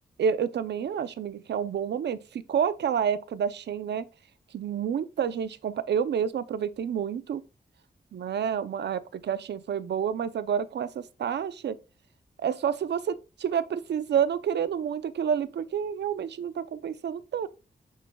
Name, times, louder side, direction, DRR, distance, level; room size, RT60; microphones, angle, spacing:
voice 1, 0.2-4.0 4.5-7.4 8.1-11.8 12.4-17.5, right 8 dB, 85° right, 0.6 m, -29 dB
8.6 x 6.5 x 2.3 m
cardioid pair, 75°, 17 cm